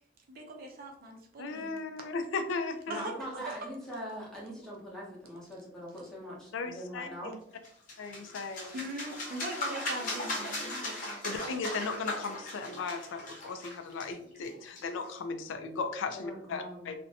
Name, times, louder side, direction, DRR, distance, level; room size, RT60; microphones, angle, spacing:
voice 1, 0.3-1.7 2.9-3.6 8.7-11.2, right 1 dB, 50° right, 2 dB, 0.5 m, -41 dB
voice 2, 1.4-3.0 6.5-7.3 8.0-8.8 11.2-16.9, left 4 dB, 80° left, 7 dB, 0.3 m, -36 dB
voice 3, 2.9-7.3 16.1-16.9, equal, 5° left, -5 dB, 0.8 m, -42 dB
sound 1, 7.6-15.1, left 1 dB, 45° left, 0.8 m, -38 dB
2.5 x 2.1 x 2.6 m, 0.70 s
head